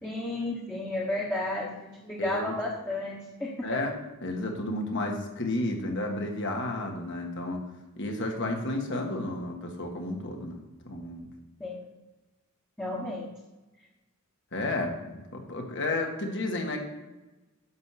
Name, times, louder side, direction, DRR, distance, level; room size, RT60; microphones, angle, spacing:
voice 1, 0.0-3.7 11.6-11.8 12.8-13.3, left 2 dB, 10° left, -5 dB, 1.2 m, -32 dB
voice 2, 2.2-2.6 3.6-4.0 4.2-7.6 8.0-10.6 10.8-11.3 14.5-16.8, left 2 dB, 55° left, 2 dB, 1.7 m, -32 dB
10.5 x 6.5 x 5.8 m, 1.1 s
head